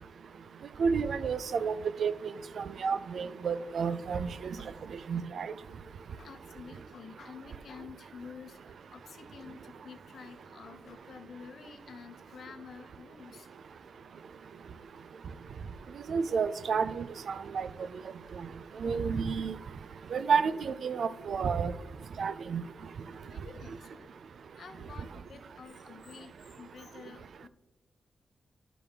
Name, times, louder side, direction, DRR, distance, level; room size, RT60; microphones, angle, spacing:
voice 1, 0.8-2.1 2.6-4.6 5.1-5.5 16.1-17.7 18.8-19.5 20.1-21.7 22.2-22.6, right 6 dB, 70° right, 14 dB, 0.4 m, -30 dB
voice 2, 3.8-4.2 4.6-4.9 6.2-13.5 23.2-24.1 24.5-27.5, left 6 dB, 70° left, 7 dB, 0.8 m, -50 dB
11.5 x 5.0 x 3.6 m, 1.0 s
wide cardioid pair, 110°, 0 cm